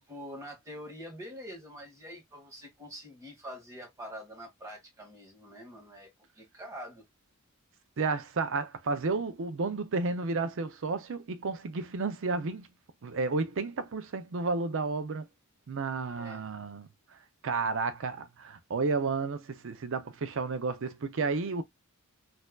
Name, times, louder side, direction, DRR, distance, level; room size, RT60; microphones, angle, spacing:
voice 1, 0.0-7.1 16.1-16.5, equal, 15° right, 1.6 m, -45 dB
voice 2, 8.0-12.7 13.0-15.3 15.7-16.9 17.4-21.6, right 4 dB, 60° right, 0.5 m, -32 dB
4.3 x 2.6 x 2.2 m
head